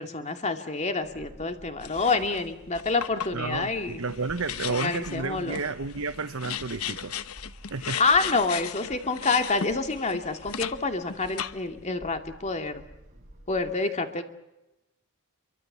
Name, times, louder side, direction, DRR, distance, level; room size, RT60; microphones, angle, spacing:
voice 1, 0.0-4.0 4.8-5.6 8.0-12.8 13.5-14.2, left 3 dB, 30° left, 6 dB, 2.6 m, -27 dB
sound 1, 1.0-13.7, equal, 35° right, 7.4 m, -51 dB
sound 2, 1.8-2.4 2.7-10.8 11.1-11.8, left 8 dB, 80° left, 1.1 m, -36 dB
voice 2, 3.3-7.1 7.7-8.0, right 4 dB, 70° right, 10 dB, 1.0 m, -31 dB
28.0 x 24.0 x 7.0 m, 0.94 s
head